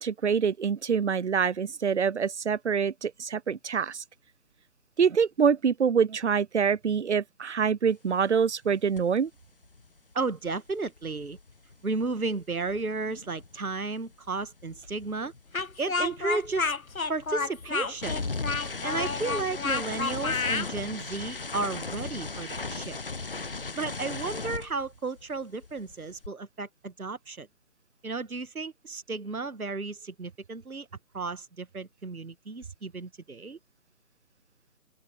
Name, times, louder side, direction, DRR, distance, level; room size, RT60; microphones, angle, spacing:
voice 1, 0.0-4.0 5.0-9.3, right 6 dB, 55° right, 0.6 m, -25 dB
sound 1, 9.0-9.2 9.4-13.8 14.1-25.4 25.6-26.3, left 3 dB, 40° left, 0.5 m, -38 dB
voice 2, 10.1-11.4 11.8-15.3 15.8-16.7 17.1-18.3 18.8-23.0 23.7-27.5 28.0-30.9 31.1-33.6, right 3 dB, 80° right, 1.3 m, -33 dB
Speech, 15.5-20.7, left 4 dB, 70° left, 1.4 m, -30 dB
open air
figure-of-eight pair, 150°, 43 cm